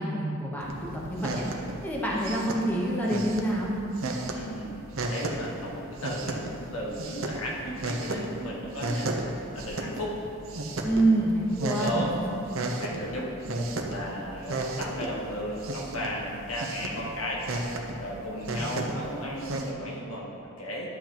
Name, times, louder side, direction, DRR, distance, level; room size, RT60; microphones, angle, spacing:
voice 1, 0.0-3.7 10.8-12.1 12.7-12.8 18.6-18.9, right 1 dB, 10° left, -5 dB, 1.0 m, -27 dB
sound 1, 0.6-19.7, right 2 dB, 65° right, 0.8 m, -34 dB
voice 2, 4.3-10.1 11.7-12.1 12.7-13.3 13.9-17.4 18.0-21.0, equal, 75° left, -3 dB, 1.5 m, -35 dB
11.5 x 7.4 x 3.0 m, 2.7 s
head